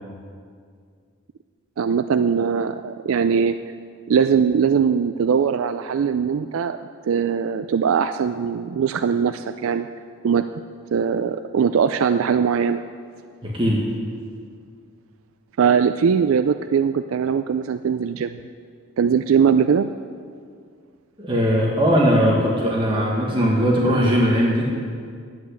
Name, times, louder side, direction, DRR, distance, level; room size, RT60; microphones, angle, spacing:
voice 1, 1.8-3.6 4.1-6.8 7.0-9.9 10.2-10.5 10.9-12.8 15.6-18.4 19.0-19.9, right 6 dB, 80° right, 10 dB, 0.4 m, -20 dB
voice 2, 13.4-13.9 21.2-24.7, equal, 25° right, -3 dB, 1.6 m, -19 dB
11.0 x 8.2 x 8.4 m, 2.1 s
head